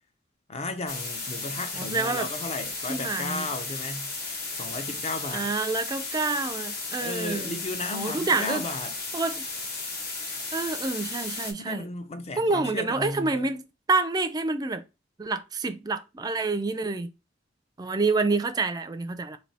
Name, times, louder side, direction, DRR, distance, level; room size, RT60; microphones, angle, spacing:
voice 1, 0.5-4.1 4.5-5.5 7.0-8.9 11.7-13.5, left 2 dB, 35° left, 0.5 m, -34 dB
sound 1, 0.9-11.5, left 3 dB, 55° left, 1.1 m, -34 dB
voice 2, 1.7-2.3 2.9-3.5 5.3-7.6 7.9-8.6 9.1-9.4 10.5-11.9 12.4-13.6 13.9-14.8 15.2-17.1 17.8-19.4, right 3 dB, 20° right, 0.4 m, -28 dB
3.3 x 2.7 x 4.0 m
head